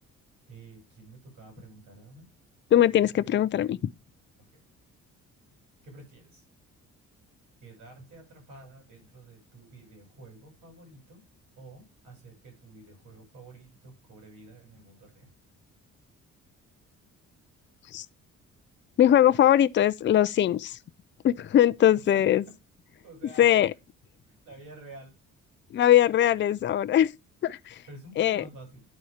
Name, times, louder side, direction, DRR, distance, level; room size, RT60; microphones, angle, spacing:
voice 1, 0.5-2.3 4.5-4.6 5.8-6.4 7.6-11.2 11.6-15.3 22.1-22.4 23.0-23.6 24.3-25.1 27.9-28.8, right 2 dB, 85° right, 6.2 m, -49 dB
voice 2, 2.7-3.8 17.9-18.1 19.0-20.8 21.2-22.4 23.4-23.7 25.7-27.1 27.4-27.8 28.2-28.4, left 11 dB, 40° left, 0.4 m, -21 dB
9.7 x 4.2 x 4.9 m
cardioid pair, 90°, 30 cm